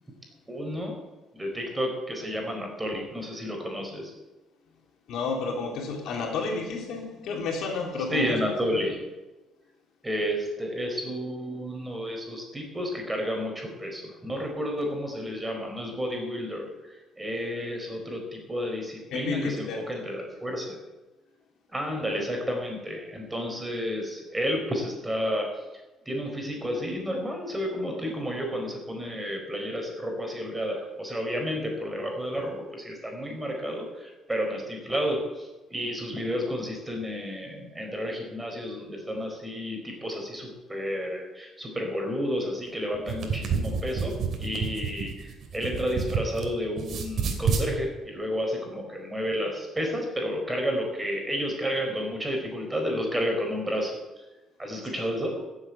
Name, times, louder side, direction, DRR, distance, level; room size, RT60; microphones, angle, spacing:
voice 1, 0.5-1.0 1.3-4.1 8.1-9.0 10.0-20.8 21.7-25.5 26.0-44.1 44.4-54.0 54.6-55.4, equal, 10° right, 2 dB, 4.6 m, -31 dB
voice 2, 5.1-8.4 19.1-19.8, left 4 dB, 75° left, 1 dB, 3.2 m, -30 dB
sound 1, 42.9-46.5 46.8-47.7, right 5 dB, 55° right, 2.8 m, -29 dB
15.0 x 8.1 x 8.3 m, 1.1 s
cardioid pair, 110°, 0 cm